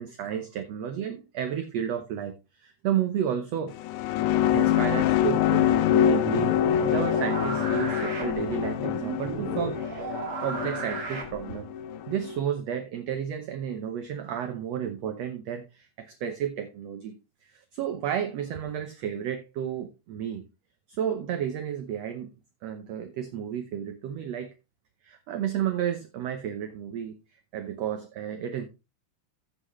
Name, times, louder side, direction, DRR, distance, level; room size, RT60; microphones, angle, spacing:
voice 1, 0.0-3.7 4.5-11.7 12.1-20.4 20.9-22.3 22.6-24.5 25.0-28.6, right 9 dB, 70° right, 1.6 m, -32 dB
sound 1, 3.7-12.4, left 10 dB, 75° left, 2.1 m, -25 dB
sound 2, 6.2-11.7, right 3 dB, 40° right, 2.6 m, -35 dB
15.0 x 6.2 x 3.1 m
omnidirectional pair, 4.0 m